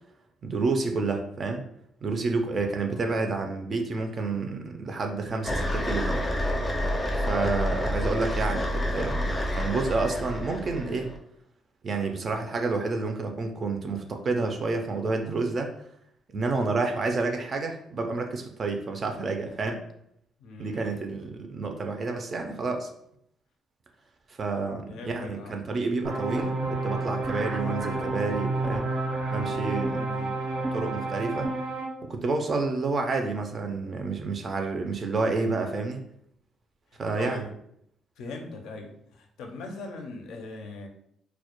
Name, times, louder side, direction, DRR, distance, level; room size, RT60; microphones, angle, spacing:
voice 1, 0.4-1.6 2.0-6.3 7.2-11.1 11.8-15.7 16.3-19.8 20.6-22.9 24.3-28.9 29.3-30.0 30.7-31.5 32.0-36.0 37.0-37.5, right 3 dB, 45° right, 4 dB, 0.3 m, -29 dB
voice 2, 2.7-3.2 20.4-21.0 24.9-25.6 29.9-30.4 37.1-37.5 38.2-40.9, left 3 dB, 85° left, 3 dB, 0.4 m, -40 dB
sound 1, 5.4-11.2, equal, 25° left, 0.5 m, -28 dB
sound 2, 26.0-31.9, right 2 dB, 85° right, 0.8 m, -30 dB
2.1 x 2.1 x 2.8 m, 0.72 s
cardioid pair, 90°, 0 cm